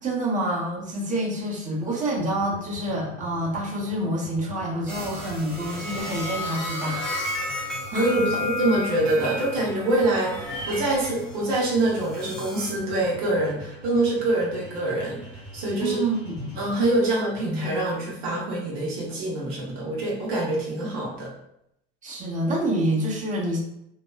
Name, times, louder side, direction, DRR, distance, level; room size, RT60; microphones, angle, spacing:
voice 1, 0.0-7.0 7.9-8.4 15.8-16.6 17.5-17.7 22.0-23.6, right 1 dB, 25° right, -4 dB, 0.9 m, -27 dB
sound 1, 2.2-16.9, equal, 85° right, 1.1 m, -44 dB
sound 2, 4.9-12.7, left 2 dB, ahead, 0.8 m, -33 dB
voice 2, 7.9-15.2 15.5-16.0 16.6-21.3, right 2 dB, 65° right, -4 dB, 0.9 m, -25 dB
2.9 x 2.0 x 2.2 m, 0.78 s
hypercardioid pair, 75°, 31 cm